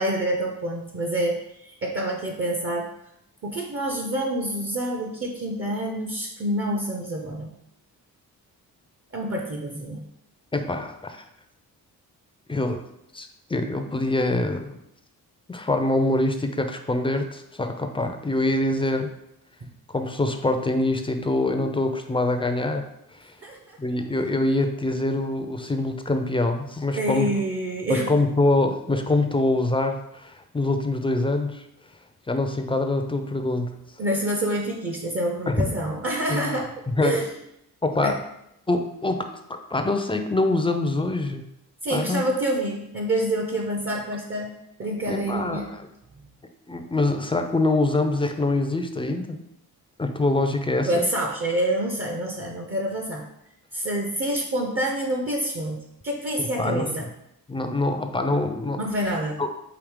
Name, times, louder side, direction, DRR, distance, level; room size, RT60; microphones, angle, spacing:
voice 1, 0.0-2.9 3.4-7.5 9.1-10.0 19.6-19.7 23.4-23.8 26.9-28.1 34.0-36.7 37.0-37.3 38.0-38.2 41.8-44.5 44.8-45.7 46.2-46.3 50.9-53.3 53.7-57.1 58.8-59.4, right 1 dB, 35° right, 1 dB, 0.6 m, -27 dB
voice 2, 10.5-11.2 12.5-12.8 13.1-14.8 15.5-19.1 19.9-22.8 23.2-23.3 23.8-27.3 27.9-31.6 32.3-33.7 35.5-35.7 36.3-36.5 36.9-37.2 37.8-38.2 38.7-41.4 41.9-42.2 45.1-45.8 46.7-49.4 50.0-51.1 56.4-57.1 57.5-58.8 59.4-59.5, left 2 dB, 15° left, 6 dB, 0.4 m, -24 dB
4.9 x 2.8 x 3.6 m, 0.81 s
cardioid pair, 85°, 37 cm